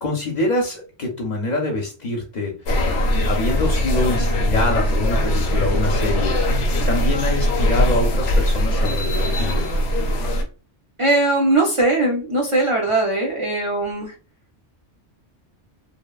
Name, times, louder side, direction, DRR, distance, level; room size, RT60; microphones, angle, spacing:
voice 1, 0.0-2.8 3.2-6.4 6.9-9.7, left 2 dB, 50° left, 0 dB, 0.6 m, -25 dB
sound 1, 2.7-10.4, equal, 85° left, 0.9 m, -20 dB
voice 2, 11.0-14.1, right 2 dB, 50° right, -1 dB, 0.3 m, -20 dB
2.9 x 2.0 x 2.3 m, 0.34 s
omnidirectional pair, 1.2 m